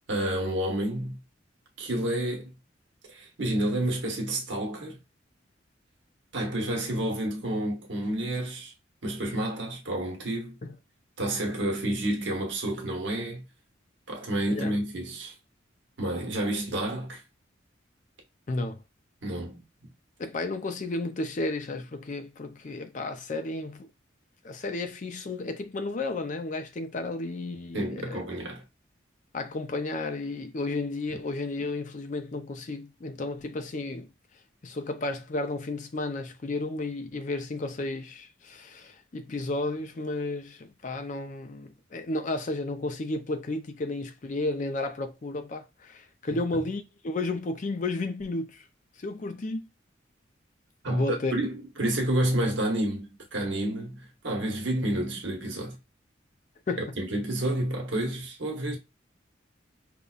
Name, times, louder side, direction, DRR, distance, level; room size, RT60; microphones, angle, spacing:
voice 1, 0.1-1.2 1.8-2.5 3.1-5.0 6.3-8.7 9.0-10.6 11.2-13.4 14.1-15.3 16.0-17.2 19.2-19.9 27.7-28.6 46.3-46.4 50.8-55.8 56.8-58.8, right 1 dB, 75° right, 1.1 m, -30 dB
voice 2, 18.5-18.8 20.2-23.9 24.4-28.2 29.3-34.1 34.6-48.6 49.0-49.6 50.9-51.3 56.7-57.0, left 2 dB, 40° left, 0.4 m, -33 dB
5.2 x 2.2 x 2.4 m
head